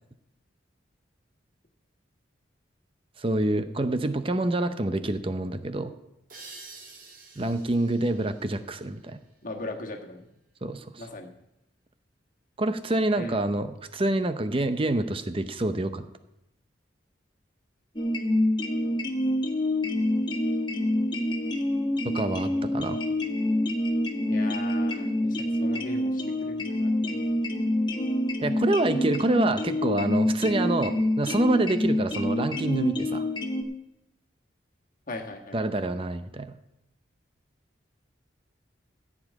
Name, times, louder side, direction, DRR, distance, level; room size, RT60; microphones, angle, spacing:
voice 1, 3.2-5.9 7.4-9.2 10.6-11.1 12.6-16.1 22.0-23.0 28.4-33.2 35.5-36.6, right 2 dB, 30° right, 10 dB, 0.7 m, -27 dB
sound 1, 6.3-9.7, right 3 dB, 45° right, 1.9 m, -49 dB
voice 2, 9.4-10.3 11.0-11.3 13.2-13.4 24.3-27.3 35.1-35.6, left 2 dB, 45° left, 2 dB, 1.6 m, -39 dB
sound 2, 18.0-33.6, left 1 dB, 25° left, 1.2 m, -27 dB
14.5 x 5.2 x 8.5 m, 0.86 s
head